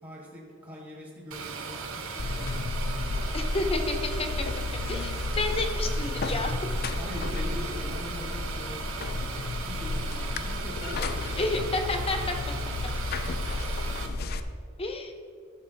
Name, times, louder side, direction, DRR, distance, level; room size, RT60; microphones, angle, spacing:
voice 1, 0.0-3.4 7.0-9.2 9.6-11.5, equal, 25° right, -3 dB, 1.5 m, -42 dB
sound 1, 1.3-14.1, right 5 dB, 85° right, 1.0 m, -38 dB
Buzz, 2.2-14.4, left 2 dB, 50° left, 0.5 m, -32 dB
voice 2, 3.3-4.5 4.9-6.5 11.4-12.3 14.8-15.1, left 2 dB, 30° left, 5 dB, 0.9 m, -30 dB
13.0 x 6.7 x 4.0 m, 2.4 s
head